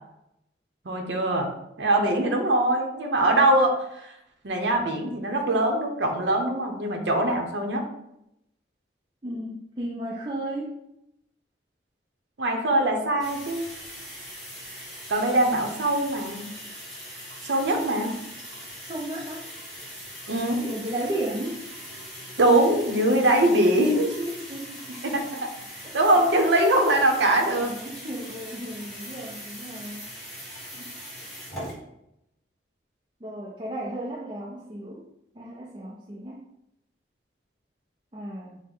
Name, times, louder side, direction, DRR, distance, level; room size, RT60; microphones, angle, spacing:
voice 1, 0.9-1.5 1.8-3.7 4.4-7.8 12.4-13.6 15.1-16.5 17.4-18.1 20.3-20.6 22.4-24.1 25.0-25.5 25.8-27.7, right 1 dB, 85° right, 2 dB, 0.7 m, -22 dB
voice 2, 9.2-10.7 18.8-19.5 20.6-21.6 23.8-24.9 25.8-26.0 27.5-30.1 30.7-30.9 33.2-35.0 35.3-36.5 38.1-38.6, right 1 dB, 30° right, -4 dB, 0.5 m, -34 dB
sound 1, 13.2-31.7, equal, ahead, 1.4 m, -41 dB
6.0 x 2.1 x 3.7 m, 0.82 s
head